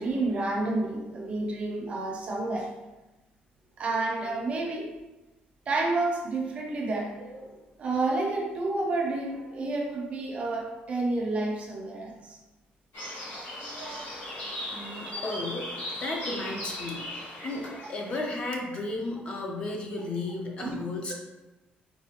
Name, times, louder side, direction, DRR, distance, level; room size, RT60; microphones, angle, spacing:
voice 1, 0.0-2.7 3.8-5.0 5.7-12.4 13.3-14.5 15.1-15.4 17.7-17.8 20.6-20.8 21.1-21.2, right 2 dB, 35° right, 0 dB, 0.5 m, -30 dB
sound 1, 12.9-18.2, left 1 dB, 75° left, 1.0 m, -38 dB
voice 2, 14.7-15.7 16.0-17.1 17.4-21.1, left 2 dB, 30° left, 0 dB, 0.5 m, -34 dB
4.0 x 2.2 x 2.8 m, 1.1 s
cardioid pair, 170°, 3 cm